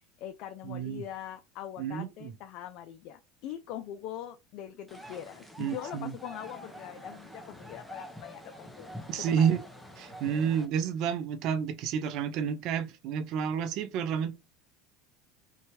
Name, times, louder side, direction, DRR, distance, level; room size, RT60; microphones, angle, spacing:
voice 1, 0.0-9.5, left 11 dB, 60° left, 0.3 m, -42 dB
voice 2, 0.6-1.0 1.8-2.3 5.6-6.1 9.1-9.6 10.0-14.3, right 8 dB, 55° right, 0.5 m, -30 dB
sound 1, 4.9-10.6, equal, 5° left, 0.6 m, -46 dB
2.7 x 2.2 x 2.9 m
supercardioid pair, 115°, 0 cm